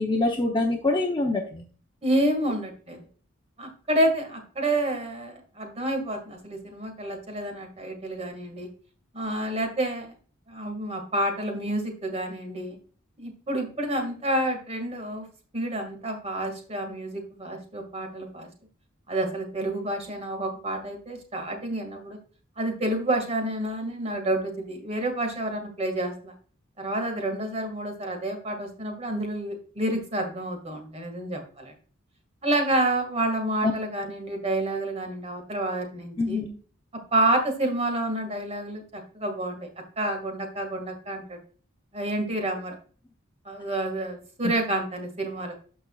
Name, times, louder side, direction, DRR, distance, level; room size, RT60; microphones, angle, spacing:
voice 1, 0.0-1.6 33.6-33.7 36.2-36.5, left 2 dB, 25° left, 2 dB, 0.8 m, -25 dB
voice 2, 2.0-3.1 3.6-8.7 9.1-10.1 10.5-12.8 13.2-15.3 15.5-18.5 19.1-22.2 22.6-26.3 26.8-31.7 32.4-36.4 37.1-39.7 40.0-41.4 41.9-42.8 43.5-45.5, right 1 dB, 30° right, 4 dB, 2.0 m, -29 dB
12.5 x 5.4 x 2.4 m, 0.41 s
head